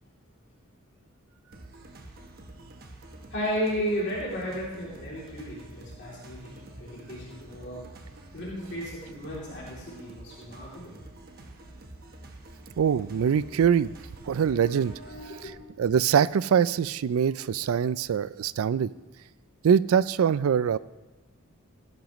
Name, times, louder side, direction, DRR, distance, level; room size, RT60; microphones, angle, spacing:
sound 1, 1.5-15.2, right 2 dB, 45° right, 1.1 m, -47 dB
voice 1, 3.3-7.8 8.3-10.9 14.3-15.6, equal, 50° left, -7 dB, 2.9 m, -34 dB
voice 2, 12.8-13.9 14.3-14.9 15.4-15.5 15.8-18.9 19.6-20.8, right 7 dB, 70° right, 18 dB, 0.3 m, -23 dB
16.5 x 10.5 x 3.1 m, 1.2 s
head